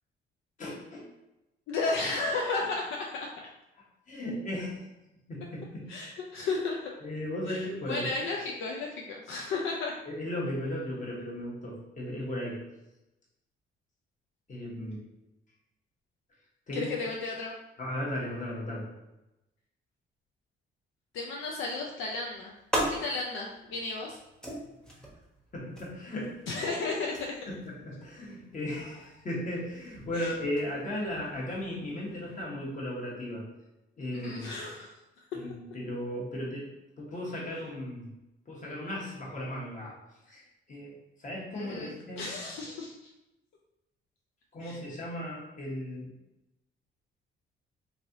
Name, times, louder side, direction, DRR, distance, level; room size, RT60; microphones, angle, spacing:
voice 1, 0.6-1.1 4.1-4.9 5.3-5.9 7.0-8.1 10.1-12.6 14.5-15.0 16.7-16.9 17.8-18.9 25.5-26.4 27.5-33.4 34.0-34.5 35.3-36.7 37.0-38.1 38.5-40.0 40.3-40.4 40.7-42.3 44.5-46.1, left 1 dB, 40° left, -4 dB, 1.2 m, -36 dB
voice 2, 1.7-3.3 5.9-6.9 7.5-9.9 16.7-17.5 21.1-22.5 22.9-24.2 26.5-27.4 30.2-30.3 34.1-34.9 41.6-42.9 44.6-44.8, left 3 dB, 80° left, -1 dB, 0.4 m, -33 dB
sound 1, 22.0-32.4, right 1 dB, 5° left, 0.8 m, -40 dB
3.2 x 2.7 x 2.6 m, 0.95 s
cardioid pair, 90°, 20 cm